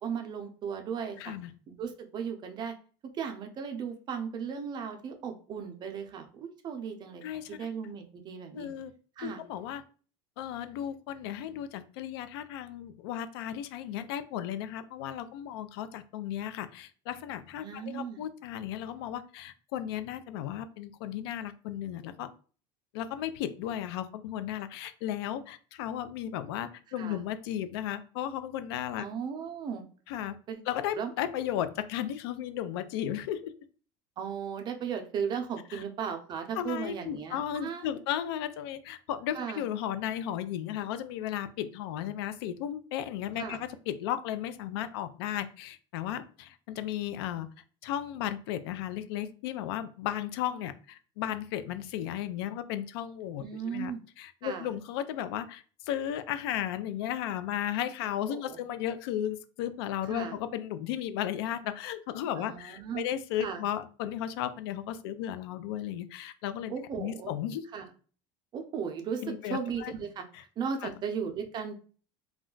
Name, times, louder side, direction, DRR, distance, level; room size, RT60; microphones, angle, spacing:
voice 1, 0.0-1.3 1.7-2.8 3.1-7.2 7.5-8.7 9.2-9.4 17.6-18.3 27.0-27.2 29.0-29.8 30.5-30.6 31.0-31.1 34.2-37.9 39.3-39.6 43.4-43.6 53.4-54.0 54.4-54.7 58.3-58.6 60.1-60.3 62.4-63.1 63.4-63.6 66.7-67.3 67.7-67.9 68.5-70.2 70.6-71.7, right 7 dB, 35° right, 5 dB, 0.6 m, -36 dB
voice 2, 1.2-1.5 7.2-7.7 8.5-8.9 9.2-9.8 10.4-22.3 22.9-29.1 30.1-30.4 30.7-33.5 35.7-35.8 36.6-47.5 47.8-67.6 69.2-69.9 70.3-70.4 70.8-70.9, left 11 dB, 85° left, 12 dB, 0.4 m, -35 dB
2.3 x 2.1 x 3.7 m, 0.40 s
supercardioid pair, 125°, 13 cm